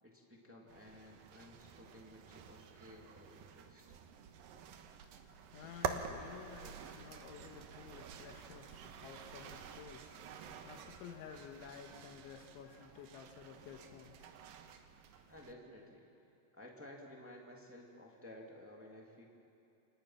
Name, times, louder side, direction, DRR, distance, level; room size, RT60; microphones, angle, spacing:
voice 1, 0.0-4.0 15.3-16.1 16.5-19.2, left 1 dB, 5° right, -1 dB, 1.1 m, -55 dB
sound 1, 0.7-15.5, right 7 dB, 70° right, 2.4 m, -49 dB
voice 2, 5.2-14.3, left 7 dB, 85° left, 4 dB, 3.9 m, -53 dB
29.5 x 26.5 x 5.9 m, 2.8 s
omnidirectional pair, 5.2 m